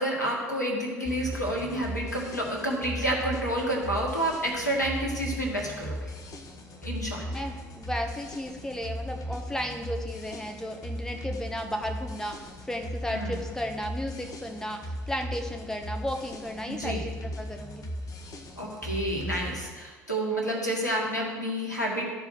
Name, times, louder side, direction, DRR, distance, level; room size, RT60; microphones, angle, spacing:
voice 1, 0.0-6.0 6.8-7.2 13.1-13.4 16.7-17.0 18.6-22.0, right 1 dB, 85° left, -1 dB, 1.6 m, -29 dB
sound 1, 1.0-19.7, equal, 40° left, 1.2 m, -38 dB
voice 2, 7.3-17.8, equal, 5° left, 3 dB, 1.3 m, -34 dB
13.0 x 4.7 x 6.0 m, 1.4 s
figure-of-eight pair, 60°, 9 cm